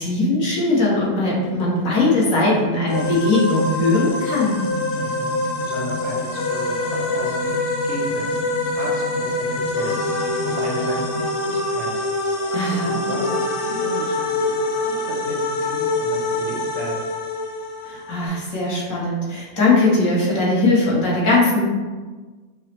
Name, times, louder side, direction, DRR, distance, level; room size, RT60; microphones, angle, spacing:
voice 1, 0.0-4.6 12.5-13.0 17.8-21.6, left 2 dB, 65° left, -5 dB, 1.4 m, -20 dB
sound 1, 1.2-11.5 12.3-14.4 14.7-15.7 16.2-16.3 16.5-16.6 16.7-16.8 17.3-17.4 17.6-17.7, left 1 dB, 45° left, 0.8 m, -35 dB
sound 2, 2.9-18.3, left 2 dB, 85° left, 1.1 m, -25 dB
voice 2, 4.9-17.1, right 1 dB, 60° right, -3 dB, 0.8 m, -34 dB
6.0 x 2.0 x 2.9 m, 1.3 s
omnidirectional pair, 1.6 m